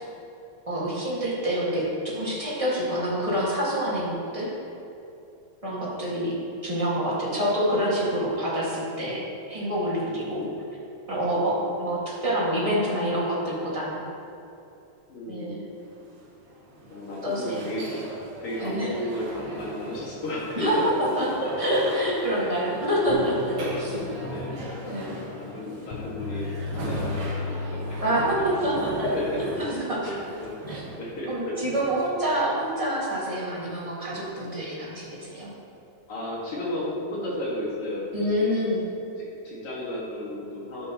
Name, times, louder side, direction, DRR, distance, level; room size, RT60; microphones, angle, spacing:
voice 1, 0.7-4.5 5.6-6.3 6.6-9.2 9.5-10.4 11.1-14.0 15.3-15.6 17.2-17.7 18.6-18.9 20.5-23.6 24.8-25.2 28.0-29.5 29.8-30.1 30.7-30.8 31.3-35.5 38.1-38.8, equal, 15° right, -6 dB, 1.5 m, -27 dB
voice 2, 7.2-7.6 10.0-10.6 11.3-11.9 15.1-15.7 16.9-18.0 18.4-20.9 21.2-21.9 22.3-22.8 23.5-28.1 29.0-29.7 30.0-30.5 31.0-31.6 31.8-31.9 36.1-38.5 39.2-40.9, left 1 dB, 50° left, -5 dB, 2.8 m, -34 dB
sound 1, 15.8-32.8, right 1 dB, 75° right, 3.2 m, -39 dB
sound 2, 23.1-28.7, left 4 dB, 80° left, 1.1 m, -36 dB
13.0 x 9.4 x 3.1 m, 2.8 s
omnidirectional pair, 3.6 m